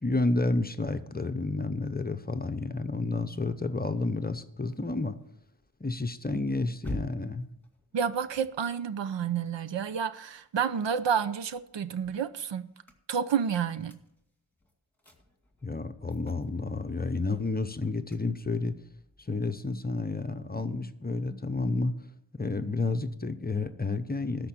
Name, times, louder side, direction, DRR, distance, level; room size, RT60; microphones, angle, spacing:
voice 1, 0.0-5.2 5.8-7.5 15.6-18.8 19.3-21.9 22.3-24.5, left 3 dB, 20° left, 0.8 m, -30 dB
sound 1, 4.0-10.5 10.9-20.7, left 1 dB, 5° left, 2.1 m, -50 dB
voice 2, 7.9-12.7 13.1-14.0, right 7 dB, 60° right, 0.8 m, -30 dB
13.0 x 5.3 x 8.8 m
cardioid pair, 80°, 48 cm